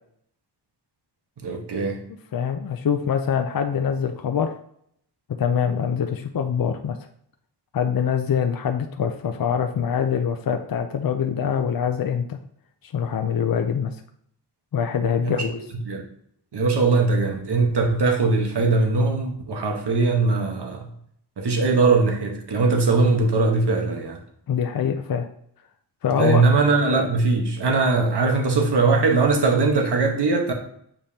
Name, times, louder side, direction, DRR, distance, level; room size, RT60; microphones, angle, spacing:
voice 1, 1.4-2.0 15.2-15.5 15.9-16.0 16.5-20.9 21.4-24.2 26.2-30.5, right 3 dB, 70° right, 3 dB, 1.2 m, -20 dB
voice 2, 2.3-4.5 5.4-7.0 7.7-12.4 12.8-13.9 14.7-15.6 24.5-25.3 26.0-26.4, left 7 dB, 55° left, 5 dB, 0.5 m, -24 dB
7.4 x 5.2 x 2.8 m, 0.68 s
wide cardioid pair, 100°, 43 cm